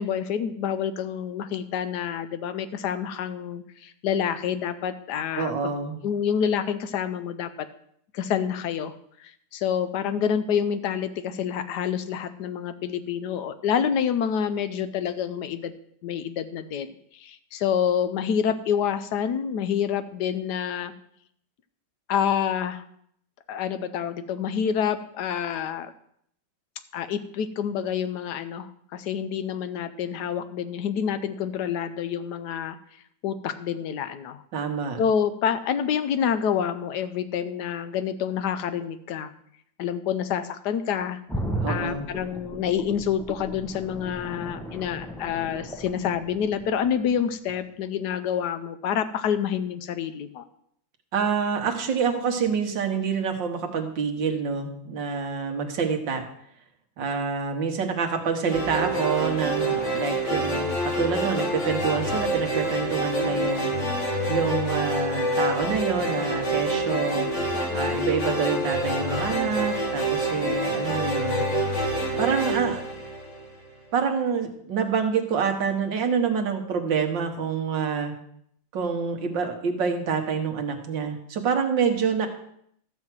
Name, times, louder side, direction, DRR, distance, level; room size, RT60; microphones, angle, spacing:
voice 1, 0.0-5.7 6.0-7.7 8.1-8.9 9.2-15.7 16.0-20.9 22.1-22.8 23.5-25.9 26.9-32.8 33.2-34.4 35.0-39.3 39.8-41.2 41.7-50.4, left 8 dB, 70° left, 11 dB, 1.2 m, -27 dB
voice 2, 5.4-6.0 34.5-35.0 41.6-42.1 51.1-56.2 57.0-63.7 64.3-71.5 72.2-72.8 73.9-78.1 78.7-82.3, right 6 dB, 80° right, 3 dB, 2.0 m, -27 dB
sound 1, 41.3-47.1 47.5-47.6, equal, 5° left, 0.3 m, -35 dB
sound 2, 58.5-73.7, right 1 dB, 40° left, 1.9 m, -27 dB
13.0 x 4.5 x 7.6 m, 0.69 s
omnidirectional pair, 2.0 m